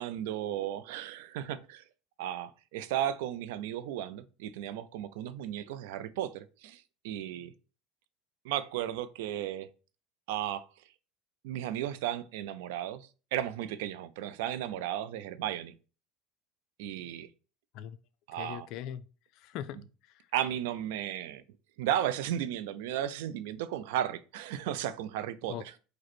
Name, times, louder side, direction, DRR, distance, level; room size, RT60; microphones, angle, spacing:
voice 1, 0.0-1.8 2.2-7.5 8.4-9.7 10.3-10.6 11.4-15.7 16.8-17.3 18.3-18.7 20.3-21.4 21.8-25.5, right 11 dB, 85° right, 0.4 m, -34 dB
voice 2, 18.3-19.1 19.3-20.3 25.5-25.8, left 10 dB, 60° left, 0.4 m, -41 dB
5.0 x 2.1 x 4.3 m
supercardioid pair, 120°, 0 cm